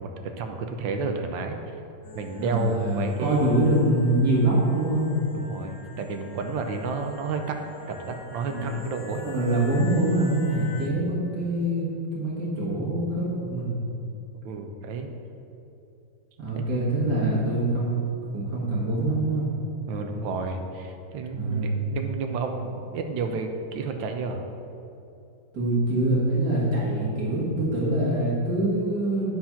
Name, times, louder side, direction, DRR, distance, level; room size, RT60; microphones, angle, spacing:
voice 1, 0.0-1.6 2.1-3.5 5.3-9.2 14.4-15.1 16.6-16.7 19.9-24.5, right 4 dB, 75° right, 5 dB, 1.4 m, -31 dB
sound 1, 2.0-10.9, left 4 dB, 60° left, 1.4 m, -46 dB
voice 2, 2.4-5.1 8.5-8.8 9.2-13.8 16.4-19.5 21.3-21.7 25.5-29.3, right 1 dB, 55° right, -6 dB, 2.0 m, -24 dB
9.6 x 4.4 x 5.7 m, 2.7 s
omnidirectional pair, 2.2 m